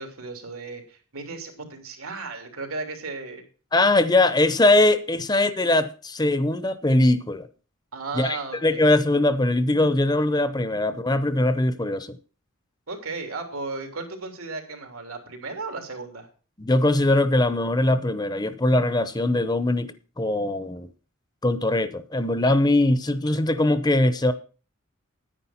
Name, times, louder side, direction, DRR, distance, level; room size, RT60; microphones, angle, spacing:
voice 1, 0.0-3.4 7.9-8.8 12.9-16.3, right 3 dB, 85° right, 3.0 m, -35 dB
voice 2, 3.7-7.5 8.2-12.2 16.6-20.9 21.4-24.3, left 2 dB, 20° left, 0.7 m, -21 dB
9.9 x 9.8 x 5.8 m
head